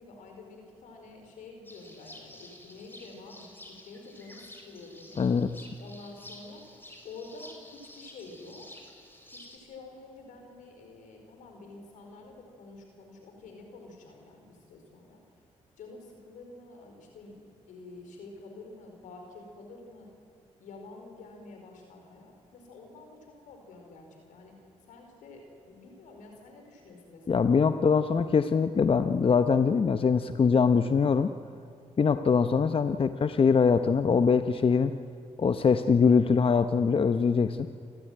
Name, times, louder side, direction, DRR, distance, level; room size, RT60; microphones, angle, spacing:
voice 1, 0.0-5.2 5.8-6.6 7.0-8.6 9.3-15.2 15.8-20.1 20.6-24.5 24.8-28.1, left 3 dB, 85° left, 3 dB, 4.8 m, -48 dB
sound 1, 1.6-9.6, left 1 dB, 15° left, 4.5 m, -50 dB
voice 2, 5.2-5.7 27.3-31.3 32.0-34.9 35.4-37.7, left 5 dB, 45° left, 10 dB, 0.9 m, -23 dB
29.0 x 13.5 x 9.4 m, 2.6 s
cardioid pair, 60°, 13 cm